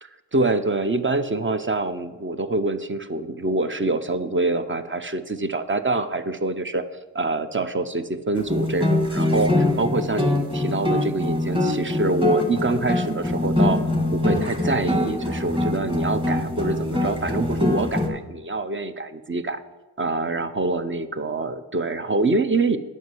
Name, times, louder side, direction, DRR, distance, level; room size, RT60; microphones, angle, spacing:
voice 1, 0.0-6.8 7.1-13.8 14.1-19.6 20.0-22.8, right 2 dB, 30° right, 10 dB, 0.7 m, -25 dB
sound 1, 8.4-18.1, left 1 dB, 10° right, 1.9 m, -23 dB
9.2 x 5.6 x 7.7 m, 1.2 s
cardioid pair, 55°, 41 cm